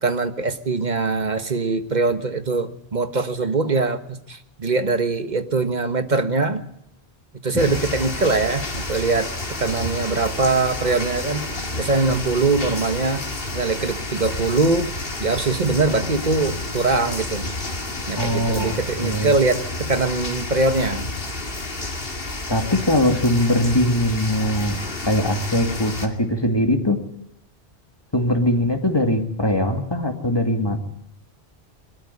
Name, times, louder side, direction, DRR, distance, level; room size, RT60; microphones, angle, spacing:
voice 1, 0.0-6.6 7.4-9.3 9.6-11.5 11.8-14.9 15.2-17.5 18.1-21.1, right 3 dB, 45° right, 9 dB, 1.6 m, -22 dB
sound 1, 7.6-26.1, left 2 dB, 60° left, 2.6 m, -30 dB
voice 2, 18.2-18.7 19.0-19.4 22.5-24.8 25.0-27.0 28.1-30.8, left 1 dB, 25° left, 5 dB, 2.4 m, -21 dB
21.5 x 13.5 x 9.8 m, 0.78 s
omnidirectional pair, 1.1 m